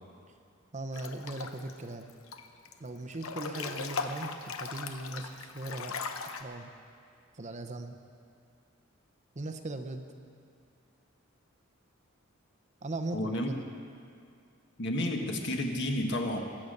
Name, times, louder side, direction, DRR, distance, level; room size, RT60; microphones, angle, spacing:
voice 1, 0.7-2.1 2.8-6.0 6.4-6.7 7.3-8.0 9.4-10.1 12.8-13.6, right 2 dB, 35° right, 7 dB, 0.8 m, -39 dB
Breathing / Bathtub (filling or washing) / Splash splatter, 0.9-1.7 2.1-2.7 3.1-6.4, left 5 dB, 80° left, 0.9 m, -38 dB
voice 2, 13.1-13.5 14.8-16.4, left 1 dB, 55° left, 2 dB, 1.6 m, -31 dB
22.0 x 8.6 x 6.6 m, 2.3 s
head